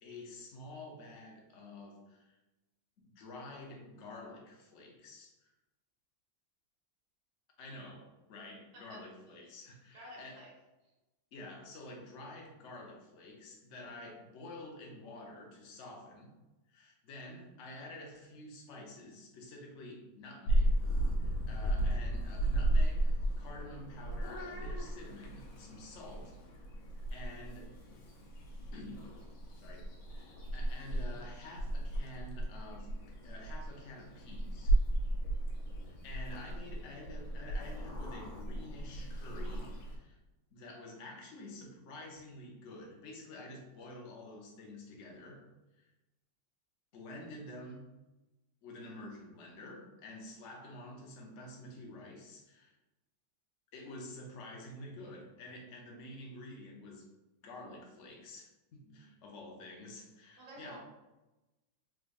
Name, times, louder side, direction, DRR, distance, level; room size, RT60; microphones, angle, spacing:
voice 1, 0.0-2.4 3.0-5.5 7.6-10.4 11.3-16.3 16.7-20.9 21.2-26.6 27.1-27.7 28.7-29.1 29.6-33.0 33.2-34.8 35.8-40.2 40.5-45.5 45.7-45.9 46.9-47.9 48.6-52.7 53.7-57.1 57.4-60.8, left 1 dB, 60° left, -1 dB, 0.8 m, -49 dB
voice 2, 8.7-9.1 9.9-10.5 10.8-10.9 60.4-60.8, right 1 dB, 75° right, -7 dB, 1.7 m, -51 dB
Purr / Meow, 20.5-40.0, right 1 dB, 85° left, 1.5 m, -34 dB
3.6 x 3.3 x 2.5 m, 1.0 s
omnidirectional pair, 2.1 m